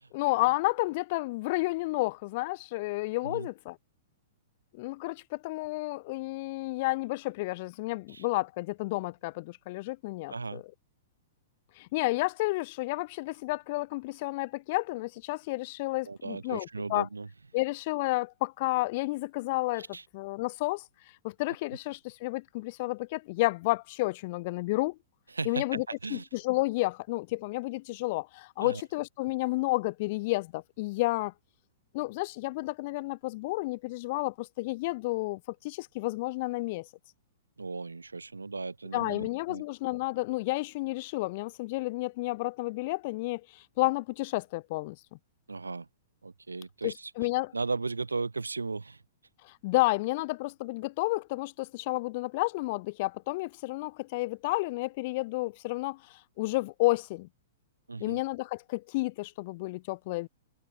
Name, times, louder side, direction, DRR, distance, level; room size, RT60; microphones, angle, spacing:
voice 1, 0.1-3.8 4.7-10.6 11.8-17.1 17.5-19.9 20.1-20.8 21.2-25.0 25.5-25.8 26.1-31.3 31.9-36.9 38.9-45.0 46.8-47.5 49.4-57.3 58.0-60.3, left 22 dB, 45° left, 0.4 m, -31 dB
voice 2, 10.3-10.6 16.0-17.3 19.9-20.0 25.3-26.3 28.6-28.8 37.6-39.6 45.5-45.9 46.2-47.1 47.5-49.0 57.9-58.2, right 3 dB, 80° right, 1.1 m, -36 dB
figure-of-eight pair, 105°, 0 cm